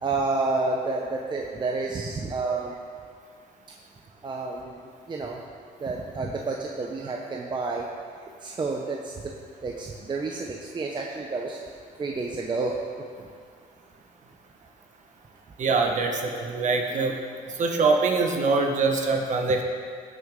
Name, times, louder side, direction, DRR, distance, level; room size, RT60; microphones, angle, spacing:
voice 1, 0.0-2.7 4.2-5.4 5.8-7.9 8.2-9.3 9.6-11.6 12.0-12.8 13.2-13.3, right 3 dB, 25° right, 0 dB, 0.8 m, -30 dB
voice 2, 15.6-17.1 17.6-19.6, right 3 dB, 45° right, 2 dB, 1.4 m, -23 dB
16.5 x 6.1 x 3.8 m, 2.1 s
cardioid pair, 110°, 17 cm